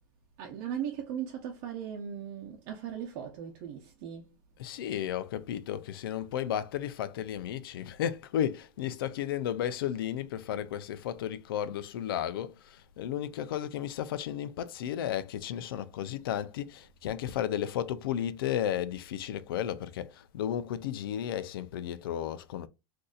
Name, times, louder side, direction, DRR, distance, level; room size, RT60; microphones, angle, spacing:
voice 1, 0.4-4.3, right 9 dB, 50° right, 0.8 m, -38 dB
voice 2, 4.6-22.7, left 10 dB, 90° left, 0.5 m, -33 dB
3.9 x 2.7 x 2.4 m
supercardioid pair, 145°, 12 cm